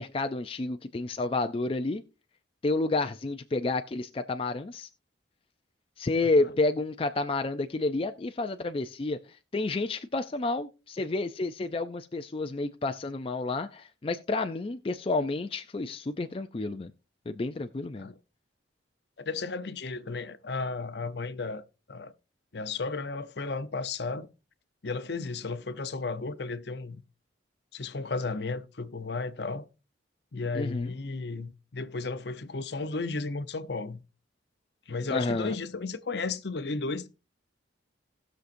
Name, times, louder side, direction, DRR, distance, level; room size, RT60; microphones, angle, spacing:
voice 1, 0.0-2.0 2.6-4.9 6.0-9.2 9.5-16.9 17.3-18.1 30.5-30.9 35.1-35.5, left 2 dB, 30° left, 0.4 m, -30 dB
voice 2, 19.3-21.6 21.9-22.1 22.5-24.3 24.8-27.0 27.7-29.7 30.3-34.0 34.9-37.1, left 3 dB, 60° left, 0.7 m, -34 dB
18.5 x 6.4 x 2.6 m
head